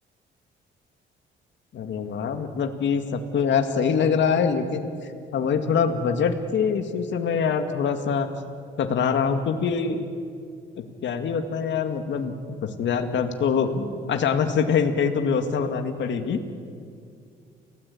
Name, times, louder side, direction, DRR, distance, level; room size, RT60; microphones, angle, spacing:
voice 1, 1.7-8.3 8.8-10.0 10.8-16.4, left 6 dB, 70° left, 6 dB, 2.2 m, -24 dB
29.0 x 18.0 x 8.6 m, 2.3 s
cardioid pair, 90°, 20 cm